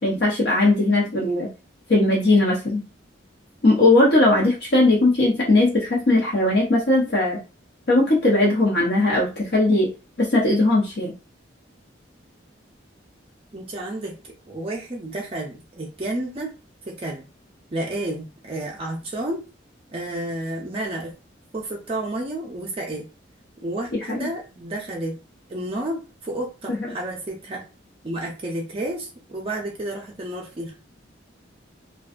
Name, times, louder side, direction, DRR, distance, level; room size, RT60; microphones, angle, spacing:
voice 1, 0.0-1.5 1.9-2.8 3.6-7.4 7.9-9.9 10.2-11.1 24.1-24.3 26.7-26.8, left 2 dB, 55° left, -4 dB, 0.6 m, -19 dB
voice 2, 13.5-14.2 14.5-16.5 16.9-17.3 17.7-19.4 19.9-21.1 21.5-23.1 23.6-25.2 25.5-27.6 28.0-30.7, right 1 dB, 30° right, -1 dB, 0.4 m, -31 dB
2.5 x 2.2 x 2.4 m, 0.31 s
head